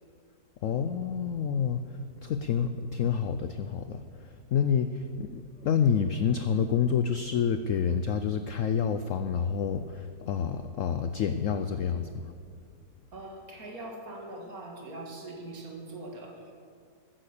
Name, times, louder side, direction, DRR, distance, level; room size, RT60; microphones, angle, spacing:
voice 1, 0.6-1.8 2.2-12.2, left 7 dB, 75° left, 10 dB, 0.7 m, -28 dB
voice 2, 13.1-16.5, right 2 dB, 55° right, 1 dB, 2.3 m, -42 dB
14.0 x 10.0 x 6.6 m, 2.3 s
omnidirectional pair, 1.9 m